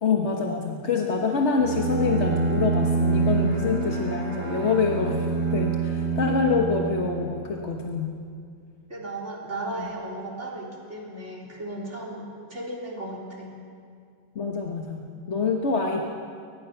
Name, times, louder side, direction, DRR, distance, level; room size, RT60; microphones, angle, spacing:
voice 1, 0.0-8.1 9.8-9.9 14.3-16.0, left 4 dB, 50° left, 1 dB, 1.5 m, -26 dB
Bowed string instrument, 1.6-7.4, right 4 dB, 70° right, 3.8 m, -26 dB
voice 2, 8.9-13.6, right 2 dB, 50° right, -3 dB, 4.0 m, -35 dB
23.0 x 19.5 x 5.8 m, 2.3 s
omnidirectional pair, 1.6 m